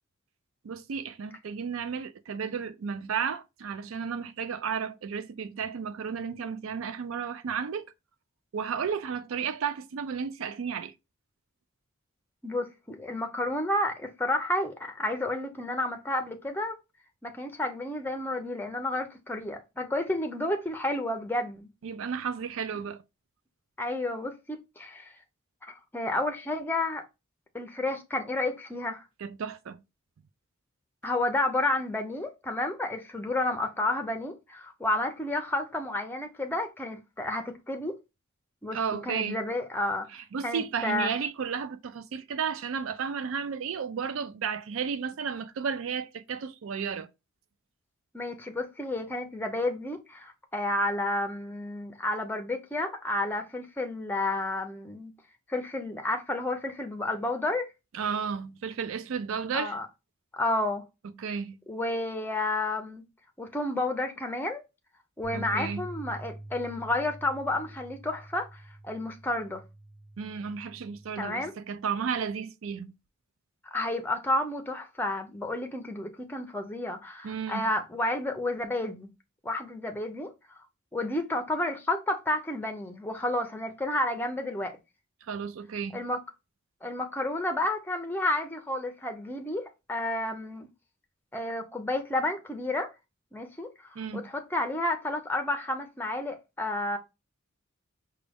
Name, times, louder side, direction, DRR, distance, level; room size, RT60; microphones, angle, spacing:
voice 1, 0.6-7.9 8.5-10.9 21.8-23.0 29.2-29.8 38.7-39.4 40.1-47.1 57.9-59.7 61.2-61.6 65.3-65.8 70.2-72.9 77.2-77.7 85.3-86.0 94.0-94.3, right 6 dB, 70° right, 0.4 m, -33 dB
voice 2, 12.4-16.8 17.2-21.7 23.8-25.1 25.6-27.0 27.5-29.0 31.0-38.0 38.6-38.8 39.1-40.1 40.4-41.2 48.1-55.1 55.5-57.7 59.5-59.9 60.3-60.9 61.7-63.0 63.4-64.6 65.2-69.6 71.2-71.5 73.7-79.1 79.4-80.6 80.9-84.8 85.9-86.2 86.8-90.7 91.3-92.9 93.3-97.0, left 1 dB, 10° left, 0.5 m, -31 dB
sound 1, 65.2-71.5, right 1 dB, 5° right, 1.0 m, -45 dB
5.0 x 2.2 x 3.4 m
head